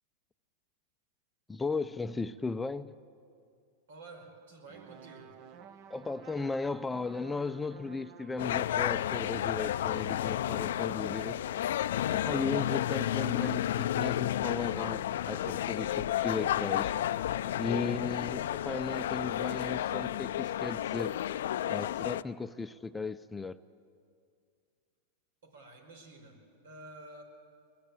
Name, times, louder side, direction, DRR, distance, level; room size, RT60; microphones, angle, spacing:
voice 1, 1.5-3.0 5.9-11.4 12.1-16.9 17.6-21.2 21.7-23.6, left 4 dB, 10° left, 11 dB, 0.5 m, -36 dB
voice 2, 3.9-5.4 25.4-27.2, right 2 dB, 80° right, 5 dB, 4.8 m, -51 dB
sound 1, 4.7-8.7, right 7 dB, 45° right, 1.0 m, -53 dB
sound 2, 8.4-22.2, left 12 dB, 75° left, 0.5 m, -32 dB
22.0 x 20.5 x 8.4 m, 2.3 s
hypercardioid pair, 120°, 0 cm